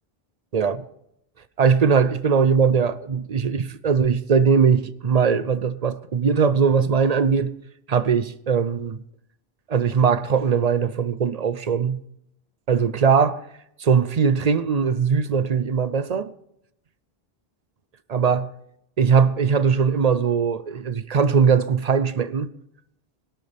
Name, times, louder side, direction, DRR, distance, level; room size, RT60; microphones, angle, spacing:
voice 1, 1.6-7.5 7.9-9.0 9.7-12.0 12.7-13.4 13.8-16.3 18.1-18.5 19.0-22.5, right 6 dB, 45° right, 0.6 m, -20 dB
21.5 x 12.5 x 3.4 m
omnidirectional pair, 1.0 m